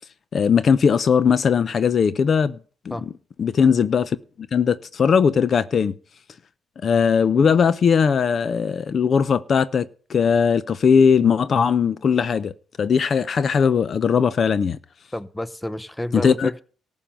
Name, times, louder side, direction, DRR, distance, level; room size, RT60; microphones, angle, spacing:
voice 1, 0.3-2.6 2.9-3.0 3.4-4.2 4.5-5.9 6.8-12.5 12.8-14.8 16.2-16.5, left 6 dB, 50° left, 0.6 m, -19 dB
voice 2, 15.1-16.6, left 1 dB, 10° left, 0.8 m, -30 dB
14.0 x 5.5 x 8.9 m
cardioid pair, 90°, 0 cm